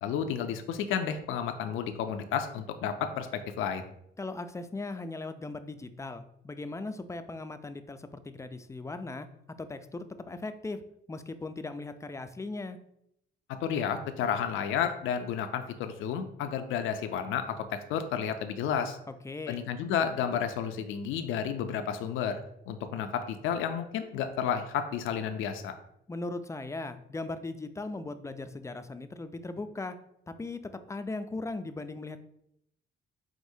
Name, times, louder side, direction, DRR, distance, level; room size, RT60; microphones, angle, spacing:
voice 1, 0.0-3.9 13.6-19.0 19.5-25.7, left 8 dB, 85° left, 8 dB, 0.4 m, -31 dB
voice 2, 4.2-9.3 9.6-10.8 11.1-12.8 19.2-19.7 26.1-30.0 30.3-30.6 30.9-32.2, left 2 dB, 15° left, 10 dB, 0.3 m, -38 dB
4.8 x 3.6 x 2.7 m, 0.76 s
cardioid pair, 90°, 20 cm